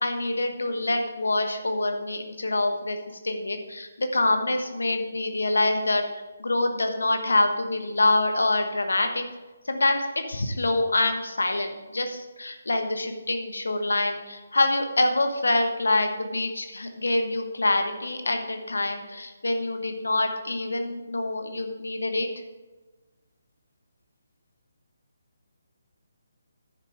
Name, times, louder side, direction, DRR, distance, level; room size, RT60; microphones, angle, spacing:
voice 1, 0.0-3.0 3.2-6.0 6.4-9.2 9.7-22.3, left 2 dB, 70° left, 6 dB, 1.3 m, -25 dB
10.5 x 6.7 x 4.9 m, 1.2 s
figure-of-eight pair, 145°, 0 cm